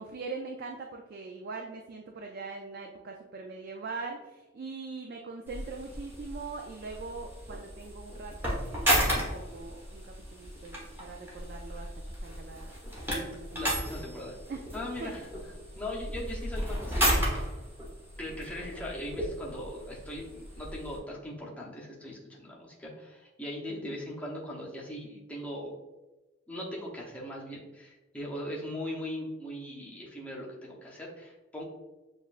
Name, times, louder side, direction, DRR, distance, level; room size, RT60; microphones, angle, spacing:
voice 1, 0.0-11.9 12.2-12.8 13.1-13.9 14.5-14.6 15.0-15.1 23.7-24.0, right 4 dB, 45° right, 2 dB, 0.3 m, -42 dB
sound 1, 5.5-21.0, equal, 10° right, 1.1 m, -34 dB
voice 2, 13.6-14.3 14.7-15.2 15.8-17.5 18.2-25.7 26.5-31.6, left 1 dB, 5° left, -4 dB, 0.7 m, -39 dB
7.1 x 2.4 x 2.4 m, 1.1 s
head